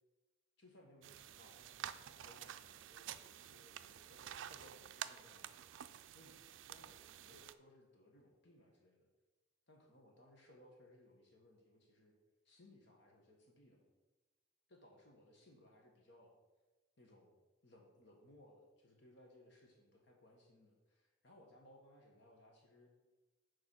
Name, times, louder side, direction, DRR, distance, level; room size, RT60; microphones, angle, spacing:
voice 1, 0.6-5.7 6.1-9.1 9.7-12.1 12.4-13.8 14.7-16.4 17.0-17.4 17.6-22.9, left 1 dB, 60° left, 0 dB, 1.5 m, -64 dB
sound 1, 1.0-7.5, right 10 dB, 70° right, 0.4 m, -50 dB
6.9 x 4.7 x 6.4 m, 1.2 s
head